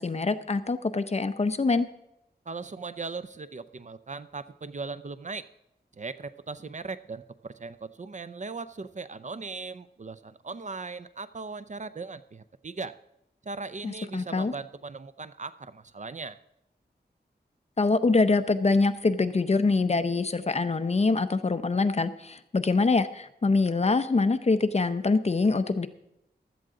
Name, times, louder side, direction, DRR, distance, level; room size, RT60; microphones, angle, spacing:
voice 1, 0.0-1.9 13.8-14.5 17.8-25.9, left 3 dB, 40° left, 11 dB, 0.7 m, -24 dB
voice 2, 2.5-5.5 6.0-13.0 13.4-16.4, right 4 dB, 45° right, 13 dB, 0.6 m, -38 dB
15.5 x 12.0 x 3.8 m, 0.81 s
wide cardioid pair, 100°, 18 cm